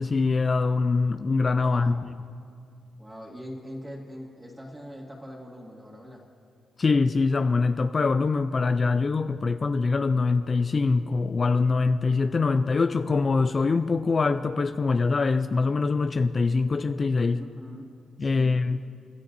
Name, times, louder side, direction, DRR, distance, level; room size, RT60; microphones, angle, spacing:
voice 1, 0.0-2.1 6.8-17.4 18.2-18.8, left 4 dB, 40° left, 10 dB, 0.4 m, -24 dB
voice 2, 1.5-2.3 3.0-6.2 17.4-17.9 18.2-18.6, equal, 15° right, -2 dB, 2.1 m, -42 dB
30.0 x 12.5 x 2.7 m, 2.3 s
cardioid pair, 80°, 0 cm